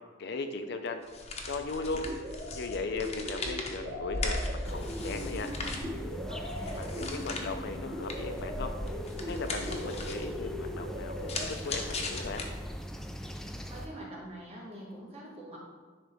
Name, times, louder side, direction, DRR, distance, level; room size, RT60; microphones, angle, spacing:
voice 1, 0.2-1.0 1.5-2.1 2.5-5.5 6.8-8.7 9.3-12.4, left 3 dB, 60° left, 7 dB, 0.5 m, -37 dB
sound 1, 1.0-12.9, left 2 dB, 35° left, 0.8 m, -39 dB
sound 2, 1.9-11.5, left 1 dB, 65° right, 1.4 m, -41 dB
sound 3, 4.6-13.9, equal, 5° left, 0.4 m, -41 dB
voice 2, 6.1-6.9 13.6-15.6, right 1 dB, 35° right, -3 dB, 1.6 m, -45 dB
10.0 x 3.9 x 3.4 m, 1.4 s
head